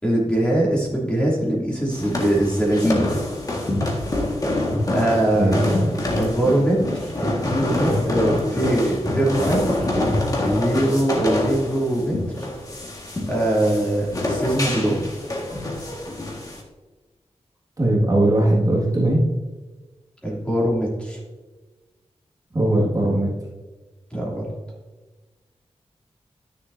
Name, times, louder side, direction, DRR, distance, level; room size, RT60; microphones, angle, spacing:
voice 1, 0.0-3.2 4.9-5.6 6.2-7.1 7.4-9.9 10.4-12.5 13.3-15.1 20.2-21.2 24.1-24.5, right 1 dB, 10° left, -5 dB, 2.7 m, -22 dB
sound 1, 1.9-16.6, left 1 dB, 35° left, 1.7 m, -26 dB
voice 2, 5.3-5.9 17.8-19.2 22.5-23.3, right 1 dB, 30° right, -4 dB, 1.9 m, -19 dB
12.5 x 6.9 x 2.7 m, 1.2 s
wide cardioid pair, 125°, 11 cm